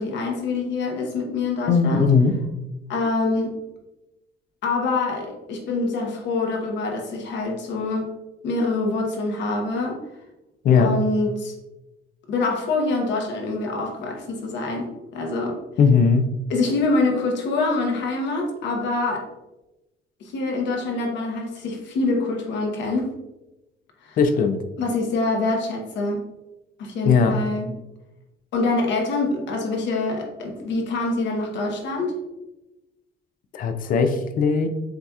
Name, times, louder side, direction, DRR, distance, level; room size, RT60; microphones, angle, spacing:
voice 1, 0.0-2.1 2.9-3.6 4.6-8.1 8.4-10.0 10.7-11.5 12.3-15.6 16.5-19.3 20.2-23.1 24.0-24.2 24.8-26.2 26.8-27.7 28.5-32.1, left 3 dB, 70° left, 1 dB, 1.0 m, -25 dB
voice 2, 1.7-2.3 10.6-10.9 15.8-16.3 24.2-24.6 27.0-27.4 33.5-34.7, left 5 dB, 50° left, 8 dB, 0.5 m, -18 dB
7.4 x 2.8 x 2.3 m, 1.0 s
cardioid pair, 165°, 19 cm